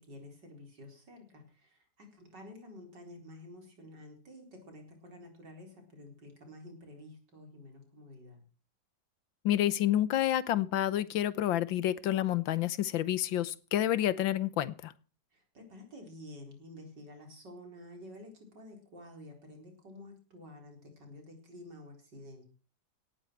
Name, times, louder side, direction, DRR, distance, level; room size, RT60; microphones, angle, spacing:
voice 1, 0.1-8.4 15.3-22.5, left 1 dB, 65° right, 4.9 m, -50 dB
voice 2, 9.4-14.9, left 12 dB, 85° left, 1.6 m, -29 dB
17.5 x 12.5 x 4.6 m
omnidirectional pair, 2.1 m